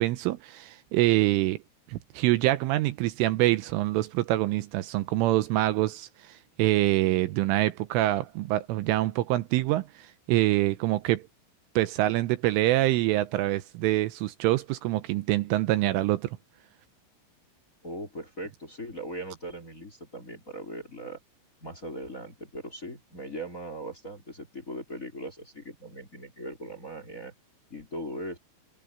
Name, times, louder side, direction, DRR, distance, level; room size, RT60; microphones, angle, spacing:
voice 1, 0.0-1.6 1.9-11.2 11.8-16.3, right 16 dB, 80° right, 3.3 m, -25 dB
voice 2, 17.8-21.2 21.6-27.3 27.7-28.4, right 1 dB, 20° left, 3.5 m, -39 dB
omnidirectional pair, 5.8 m